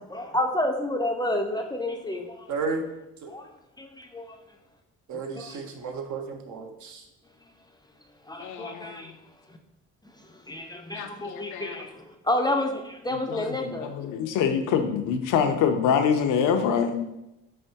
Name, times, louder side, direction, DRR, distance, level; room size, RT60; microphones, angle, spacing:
voice 1, 0.1-2.5 3.3-3.5 3.8-4.4 5.1-5.6 8.3-9.1 9.5-9.6 10.2-13.9, left 1 dB, 15° left, 4 dB, 0.3 m, -30 dB
voice 2, 2.5-2.8 3.2-3.3 5.1-7.0, right 4 dB, 70° right, 4 dB, 0.7 m, -33 dB
voice 3, 8.4-9.2 10.9-11.8 13.1-17.0, left 7 dB, 85° left, 7 dB, 0.5 m, -26 dB
4.4 x 3.3 x 2.7 m, 0.88 s
cardioid pair, 90°, 30 cm